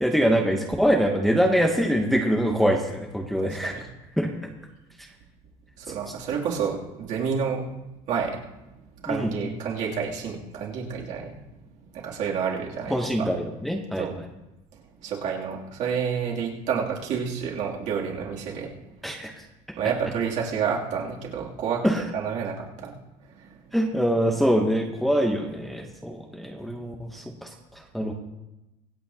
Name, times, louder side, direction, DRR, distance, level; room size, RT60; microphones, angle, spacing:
voice 1, 0.0-3.8 4.2-4.3 9.1-9.3 12.9-14.3 19.0-19.5 21.8-22.0 23.7-28.1, equal, ahead, 1 dB, 0.8 m, -24 dB
voice 2, 3.4-3.8 5.8-7.7 8.1-8.4 9.0-11.4 11.9-13.3 14.0-14.2 14.7-18.7 19.8-21.9 22.1-23.0 23.4-23.6, right 6 dB, 50° right, -3 dB, 2.7 m, -29 dB
25.0 x 8.4 x 2.8 m, 0.97 s
cardioid pair, 165°, 16 cm